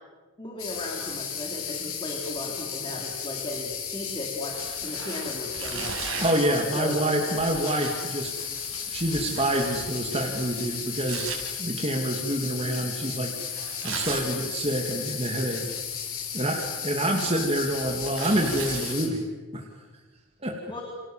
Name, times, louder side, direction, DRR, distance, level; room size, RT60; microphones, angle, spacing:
voice 1, 0.4-6.1 6.7-7.4 20.7-20.8, left 1 dB, 20° left, -1 dB, 3.9 m, -36 dB
sound 1, 0.6-19.1, left 8 dB, 75° left, 5.5 m, -34 dB
Tearing, 4.5-6.5 7.3-11.4 13.5-14.3 15.5-16.1 16.5-18.9, right 6 dB, 70° right, 6.4 m, -38 dB
voice 2, 6.2-8.3 8.9-11.3 11.6-13.3 13.8-15.7 16.3-19.2 19.5-19.6 20.4-20.6, right 1 dB, 25° right, 1 dB, 2.5 m, -27 dB
29.5 x 26.5 x 7.5 m, 1.3 s
head